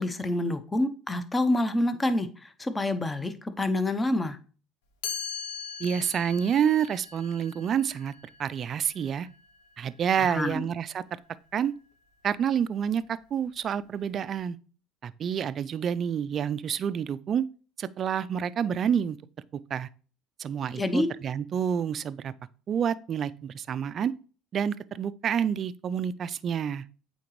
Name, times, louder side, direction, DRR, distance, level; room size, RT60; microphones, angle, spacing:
voice 1, 0.0-4.4 10.2-10.7 20.7-21.1, left 1 dB, 15° left, 0.7 m, -27 dB
Chime, 5.0-10.9, left 6 dB, 85° left, 0.9 m, -41 dB
voice 2, 5.8-8.1 8.4-9.3 9.8-11.2 11.5-11.7 12.2-14.6 15.0-17.4 17.8-19.2 19.5-19.9 20.4-22.3 22.7-24.1 24.5-26.8, right 8 dB, 45° right, 0.3 m, -28 dB
8.4 x 3.9 x 3.1 m
supercardioid pair, 85°, 0 cm